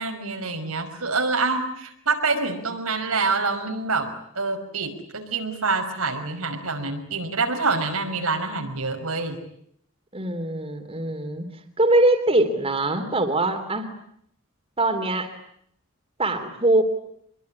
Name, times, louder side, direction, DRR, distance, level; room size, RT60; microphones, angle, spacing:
voice 1, 0.0-4.1 4.4-9.4, right 3 dB, 90° right, 4 dB, 5.6 m, -26 dB
voice 2, 10.1-11.4 11.8-13.9 14.8-15.3 16.2-16.8, right 2 dB, 25° right, 5 dB, 3.4 m, -22 dB
26.5 x 22.5 x 9.9 m, 0.71 s
head